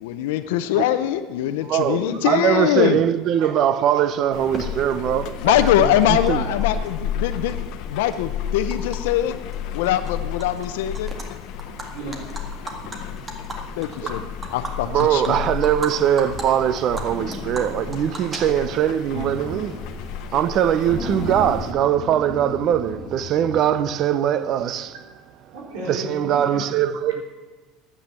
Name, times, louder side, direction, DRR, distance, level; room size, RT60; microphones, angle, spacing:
voice 1, 0.0-3.0 5.4-7.6 7.9-9.3 9.7-11.1 13.8-14.2 14.5-15.3, left 12 dB, 90° left, 0.6 m, -22 dB
voice 2, 1.6-6.6 14.0-14.2 14.8-19.9 20.3-25.0 25.9-27.2, right 10 dB, 45° right, 0.6 m, -22 dB
sound 1, 4.3-21.7, left 8 dB, 65° left, 1.0 m, -32 dB
Animal, 4.5-4.6 5.7-5.8 6.0-6.9 7.2-9.0 9.3-9.5 9.8-10.7 10.9-11.3 11.6-15.9 16.2-16.4 16.8-18.9, right 2 dB, 20° right, 1.9 m, -35 dB
voice 3, 11.9-12.3 25.5-26.6, right 2 dB, 80° right, 3.8 m, -34 dB
sound 2, 19.1-20.1 20.4-20.5 20.8-24.2, left 2 dB, 15° left, 1.9 m, -34 dB
10.5 x 8.6 x 8.1 m
supercardioid pair, 135°, 0 cm